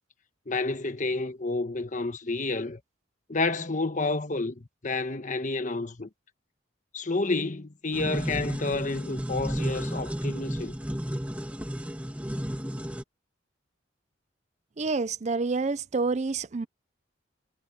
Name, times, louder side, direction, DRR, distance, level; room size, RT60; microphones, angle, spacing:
voice 1, 0.5-2.8 3.3-6.1 6.9-10.7, left 3 dB, 40° left, 1.3 m, -30 dB
sound 1, 7.9-13.0, equal, 5° right, 2.4 m, -32 dB
voice 2, 14.8-16.7, right 4 dB, 35° right, 0.5 m, -28 dB
head